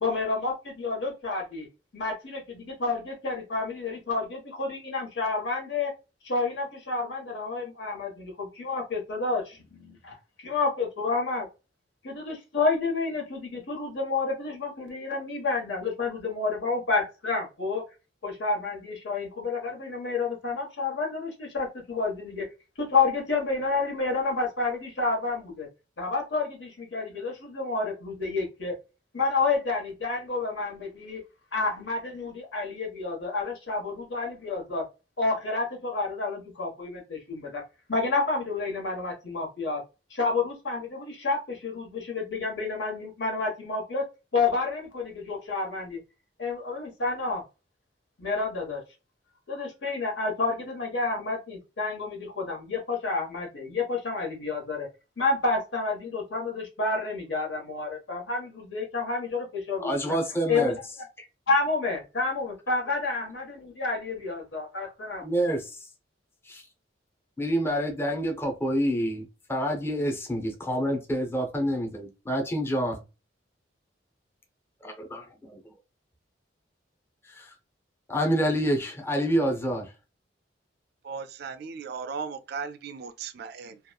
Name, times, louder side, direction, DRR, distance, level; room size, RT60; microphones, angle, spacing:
voice 1, 0.0-1.7 1.9-5.9 6.2-11.5 12.0-17.8 18.2-22.5 22.8-25.7 26.0-28.7 29.1-31.2 31.5-34.8 35.2-37.6 37.9-39.8 40.1-44.0 44.3-46.0 46.4-47.4 48.2-48.8 49.5-54.9 55.2-60.2 60.5-60.7 61.5-65.3, left 3 dB, 75° left, 1.2 m, -29 dB
voice 2, 59.8-60.7 61.2-61.3 65.2-65.7 66.5-66.6 67.4-73.0 75.1-75.2 77.3-77.5 78.1-79.9, equal, 15° left, 0.5 m, -27 dB
voice 3, 81.0-83.8, right 5 dB, 60° right, 0.3 m, -37 dB
2.8 x 2.3 x 2.3 m
head